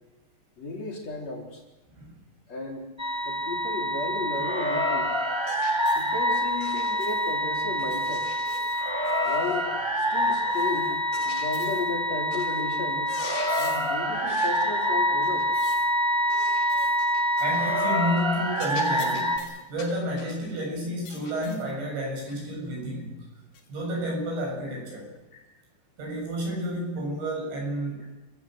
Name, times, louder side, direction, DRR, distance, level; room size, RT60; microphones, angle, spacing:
voice 1, 0.6-1.6 2.5-2.9 3.2-5.1 5.9-8.3 9.2-9.7 10.0-11.0 11.2-13.1 13.6-15.5 16.3-16.4 21.7-21.8 25.3-25.4, left 3 dB, 40° left, 0 dB, 4.4 m, -34 dB
sound 1, 3.0-19.4, equal, 10° right, 1.2 m, -26 dB
sound 2, 5.5-6.1 6.6-7.4 7.8-9.7 10.5-11.9 12.3-12.6 12.9-14.0 14.3-14.7 15.2-15.9 16.3-17.9 18.2-18.3 18.6-20.4 21.1-21.7 22.3-22.4 23.5-23.7, left 5 dB, 85° left, 5.3 m, -44 dB
voice 2, 17.4-23.2 23.7-25.1 26.0-28.2, equal, 90° right, -1 dB, 10.0 m, -31 dB
29.0 x 17.0 x 7.8 m, 1.1 s
omnidirectional pair, 4.9 m